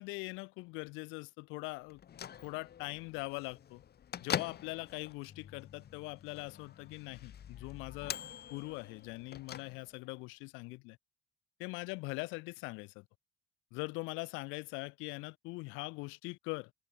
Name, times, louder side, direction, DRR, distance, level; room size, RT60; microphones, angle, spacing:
voice 1, 0.0-2.0 2.4-3.8 4.2-8.2 8.5-11.0 11.6-13.0 13.7-16.7, left 26 dB, 90° left, 5.0 m, -42 dB
Bell / Microwave oven, 1.9-10.2, left 9 dB, 55° left, 4.1 m, -44 dB
supercardioid pair, 75°, 20 cm